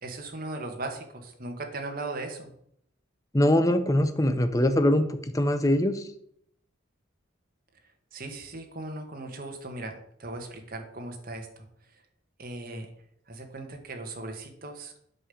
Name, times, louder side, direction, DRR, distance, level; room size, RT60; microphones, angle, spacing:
voice 1, 0.0-2.5 8.1-11.5 12.4-12.9 13.3-14.9, right 2 dB, 45° right, 3 dB, 1.7 m, -38 dB
voice 2, 3.3-5.1 5.3-6.0, left 1 dB, 15° left, 9 dB, 0.7 m, -22 dB
8.5 x 5.4 x 7.0 m, 0.71 s
head